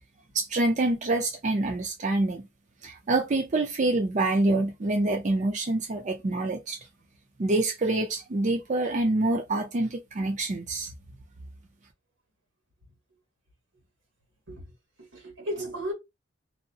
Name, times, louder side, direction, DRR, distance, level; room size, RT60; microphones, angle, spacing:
voice 1, 0.3-2.5 2.8-6.8 7.4-10.9, right 2 dB, 40° right, 0.5 m, -26 dB
voice 2, 15.0-15.9, equal, 85° right, 1.4 m, -34 dB
2.7 x 2.1 x 2.7 m
head